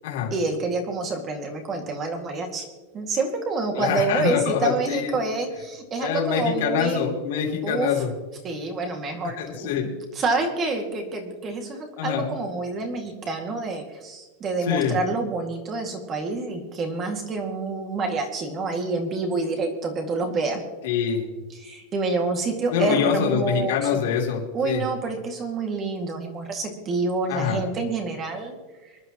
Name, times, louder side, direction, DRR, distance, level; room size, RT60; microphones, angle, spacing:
voice 1, 0.3-2.7 2.9-7.0 7.6-7.9 8.4-9.7 10.1-20.6 21.6-24.0 24.5-28.6, right 3 dB, 20° right, 4 dB, 2.2 m, -27 dB
voice 2, 3.8-5.1 6.0-8.1 9.4-9.9 12.0-12.3 14.6-15.0 20.8-21.2 22.7-24.8 27.3-27.6, left 8 dB, 65° left, -2 dB, 3.2 m, -25 dB
25.0 x 11.5 x 3.1 m, 1.2 s
supercardioid pair, 165°, 0 cm